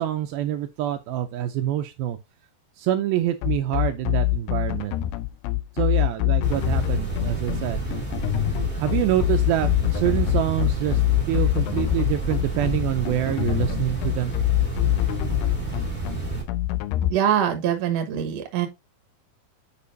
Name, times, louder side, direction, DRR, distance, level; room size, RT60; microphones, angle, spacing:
voice 1, 0.0-2.2 2.8-5.0 5.8-7.8 8.8-11.0 11.3-14.3, right 12 dB, 80° right, 2.3 m, -26 dB
sound 1, 3.4-17.1, left 18 dB, 90° left, 2.6 m, -24 dB
sound 2, 6.4-16.4, right 4 dB, 5° left, 1.1 m, -30 dB
voice 2, 17.1-18.7, right 9 dB, 65° right, 1.7 m, -23 dB
8.4 x 5.1 x 2.6 m
omnidirectional pair, 4.5 m